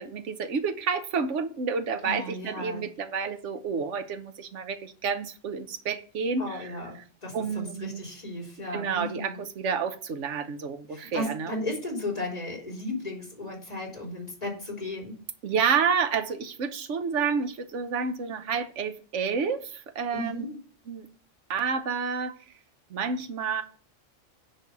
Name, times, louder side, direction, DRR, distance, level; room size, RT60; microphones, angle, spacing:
voice 1, 0.0-6.7 7.3-8.0 8.7-11.5 15.4-20.5 20.9-21.1 21.5-22.4 22.9-23.6, right 6 dB, 75° right, 1.2 m, -29 dB
voice 2, 2.0-2.8 6.4-7.0 7.2-9.4 10.9-15.1 20.1-20.6, left 1 dB, 30° left, 3.7 m, -35 dB
10.0 x 3.4 x 6.9 m
omnidirectional pair, 1.3 m